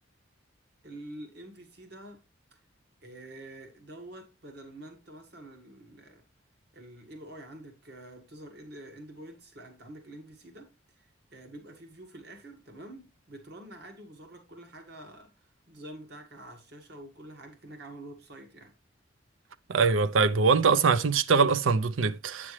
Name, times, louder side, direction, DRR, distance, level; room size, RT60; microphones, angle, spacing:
voice 1, 0.8-2.2 2.5-2.6 3.0-6.2 6.7-10.7 10.9-18.7, right 1 dB, 55° right, 1.7 m, -47 dB
voice 2, 19.7-22.5, right 5 dB, 80° right, 0.5 m, -23 dB
8.5 x 6.0 x 3.1 m
head